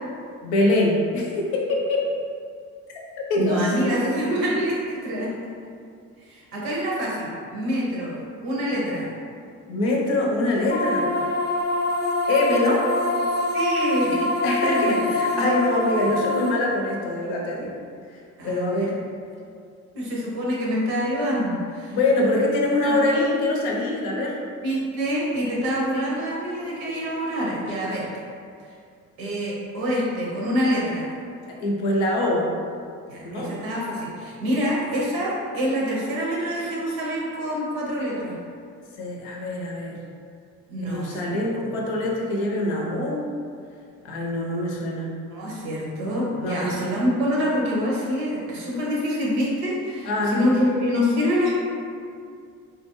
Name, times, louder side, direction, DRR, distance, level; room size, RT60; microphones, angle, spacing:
voice 1, 0.4-2.1 3.2-4.0 9.7-11.0 12.3-12.9 14.4-17.8 18.4-19.0 21.9-24.4 31.5-32.5 33.2-33.6 39.0-40.0 40.9-43.3 44.0-45.2 46.4-47.0 50.0-50.6, left 2 dB, 80° left, -1 dB, 0.6 m, -24 dB
voice 2, 3.3-5.3 6.3-9.1 13.5-14.3 14.6-15.0 18.4-19.0 19.9-22.0 22.8-22.9 24.6-28.1 29.2-31.1 33.1-38.4 40.7-41.6 45.3-51.6, equal, 85° right, -4 dB, 0.7 m, -26 dB
sound 1, 10.7-16.5, left 2 dB, 30° left, 0.4 m, -25 dB
2.3 x 2.2 x 2.9 m, 2.3 s
hypercardioid pair, 50°, 40 cm